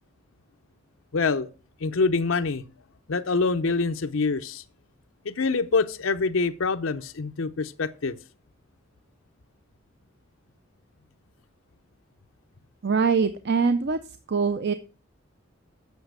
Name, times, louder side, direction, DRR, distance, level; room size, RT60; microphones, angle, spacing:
voice 1, 1.1-1.5 1.8-2.6 3.1-4.6 5.2-8.2, left 4 dB, 90° left, 0.7 m, -25 dB
voice 2, 12.8-14.0 14.3-14.7, right 5 dB, 55° right, 0.6 m, -23 dB
8.3 x 6.9 x 6.6 m
head